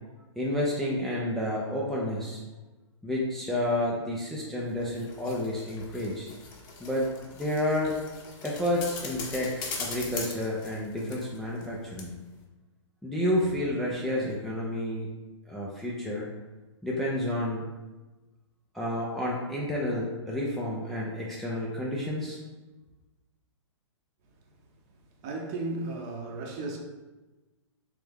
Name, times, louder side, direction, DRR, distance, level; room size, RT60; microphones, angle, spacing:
voice 1, 0.4-2.4 3.0-6.3 6.8-7.9 8.4-12.1 13.0-15.1 15.5-16.3 16.8-17.6 18.7-22.4, left 1 dB, ahead, -6 dB, 0.4 m, -30 dB
sound 1, 4.7-11.7 12.0-12.1, left 4 dB, 25° left, 0.7 m, -41 dB
voice 2, 25.1-26.8, right 2 dB, 35° right, 1 dB, 0.7 m, -34 dB
3.4 x 3.1 x 3.4 m, 1.1 s
hypercardioid pair, 135°, 16 cm